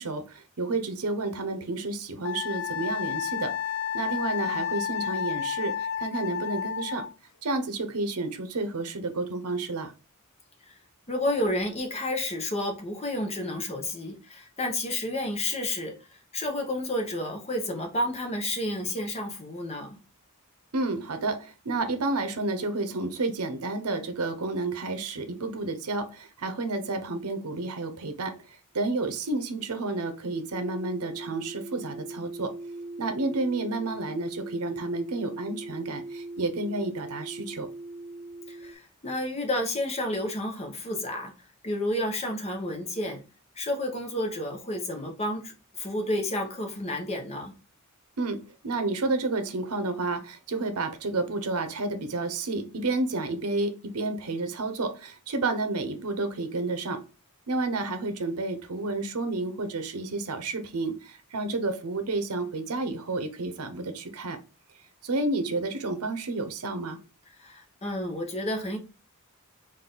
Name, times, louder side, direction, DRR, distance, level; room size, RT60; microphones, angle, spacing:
voice 1, 0.0-3.5 3.9-7.0 7.4-9.9 20.7-28.3 28.7-32.5 33.0-37.7 48.2-48.4 48.6-57.0 57.5-64.4 65.0-67.0, right 2 dB, 85° right, 0.8 m, -30 dB
Wind instrument woodwind instrument, 2.2-7.1, left 8 dB, 55° left, 0.3 m, -31 dB
voice 2, 11.1-20.0 38.5-41.3 41.6-43.2 43.6-47.5 67.4-68.8, left 1 dB, 30° left, 0.9 m, -31 dB
sound 1, 30.5-38.7, right 2 dB, 35° right, 0.5 m, -40 dB
4.0 x 2.6 x 3.8 m
head